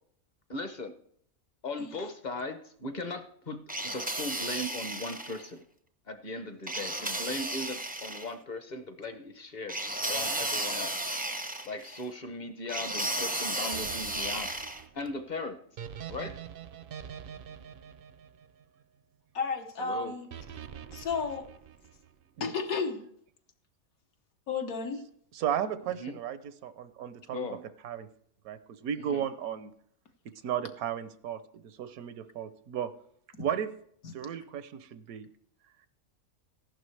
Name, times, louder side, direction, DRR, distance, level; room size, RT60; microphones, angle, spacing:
voice 1, 0.5-0.9 1.6-5.6 6.1-9.7 10.1-10.9 11.6-14.5 14.9-15.6 16.1-16.3 19.8-20.1 26.0-26.2 27.3-27.6 29.1-29.2, left 2 dB, 40° left, 8 dB, 0.7 m, -38 dB
sound 1, 3.7-5.4 6.7-8.3 9.7-12.0 12.7-14.8, right 1 dB, 15° right, 0.3 m, -34 dB
sound 2, 13.7-19.0 20.3-22.2, right 8 dB, 60° right, 0.6 m, -45 dB
voice 2, 19.3-20.3 20.9-21.5 22.4-23.0 24.5-25.1 33.4-33.5 34.0-34.1, left 5 dB, 80° left, 5 dB, 1.5 m, -33 dB
voice 3, 25.3-27.4 27.8-28.1 28.4-29.7 30.2-32.9 33.4-33.7 34.1-35.3, right 9 dB, 90° right, 12 dB, 1.2 m, -34 dB
14.0 x 11.5 x 3.3 m, 0.66 s
omnidirectional pair, 1.5 m